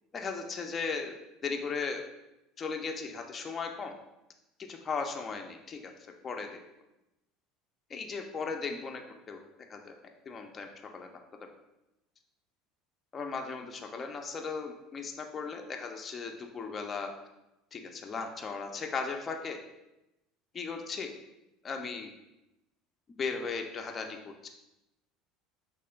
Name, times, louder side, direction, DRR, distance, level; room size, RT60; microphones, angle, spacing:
voice 1, 0.1-1.1 1.4-2.0 2.6-3.9 4.6-5.9 6.2-6.6 7.9-9.0 9.3-9.4 9.7-9.9 10.3-10.7 10.9-11.1 13.1-17.1 17.7-19.6 20.5-21.1 21.6-22.1 23.2-24.5, left 5 dB, 25° left, 3 dB, 0.3 m, -36 dB
2.9 x 2.9 x 3.3 m, 0.93 s
cardioid pair, 145°, 0 cm